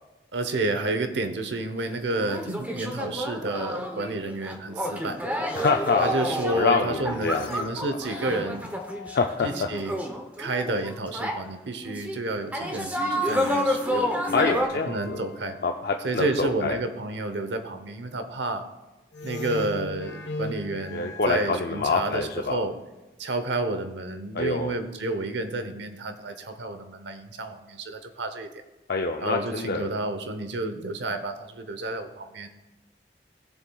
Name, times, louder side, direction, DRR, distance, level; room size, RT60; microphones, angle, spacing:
voice 1, 0.3-5.2 6.0-8.7 9.4-10.0 10.4-14.1 14.9-15.6 16.0-18.7 19.2-22.7 23.2-28.5 29.2-32.5, right 2 dB, 90° right, 8 dB, 0.9 m, -30 dB
sound 1, 1.8-1.9 2.2-11.4 11.8-12.2 12.5-14.7, equal, 10° right, 0.8 m, -30 dB
voice 2, 5.5-6.1 6.5-7.7 9.1-9.7 14.3-15.2 15.6-16.8 20.9-22.6 24.3-24.7 28.9-29.9, left 4 dB, 60° left, 3 dB, 0.5 m, -26 dB
sound 2, 7.2-9.8 13.1-16.2 19.1-22.3, left 2 dB, 90° left, 1.1 m, -38 dB
18.0 x 7.1 x 2.3 m, 1.1 s
head